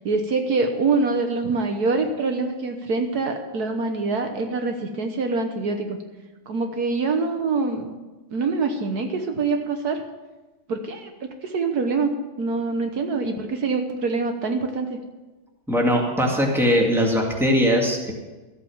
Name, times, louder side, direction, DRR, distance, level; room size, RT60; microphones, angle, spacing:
voice 1, 0.0-6.0 6.5-7.9 8.3-10.0 10.7-12.1 12.4-15.0, right 4 dB, 65° right, 5 dB, 1.6 m, -25 dB
voice 2, 15.7-18.1, equal, ahead, -1 dB, 2.0 m, -20 dB
14.0 x 8.4 x 7.1 m, 1.2 s
omnidirectional pair, 1.8 m